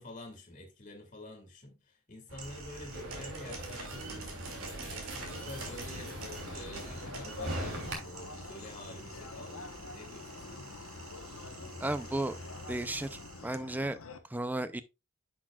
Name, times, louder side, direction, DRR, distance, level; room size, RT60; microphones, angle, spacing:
voice 1, 0.0-10.7, left 1 dB, 35° left, 2.3 m, -49 dB
sound 1, 2.3-13.4, right 2 dB, 90° right, 2.4 m, -46 dB
sound 2, 2.9-7.9, right 1 dB, 55° right, 3.1 m, -41 dB
sound 3, 5.1-14.2, left 3 dB, 85° left, 1.0 m, -47 dB
voice 2, 11.8-12.4 12.7-14.0 14.3-14.8, right 1 dB, 10° right, 0.4 m, -34 dB
10.5 x 6.2 x 2.4 m
head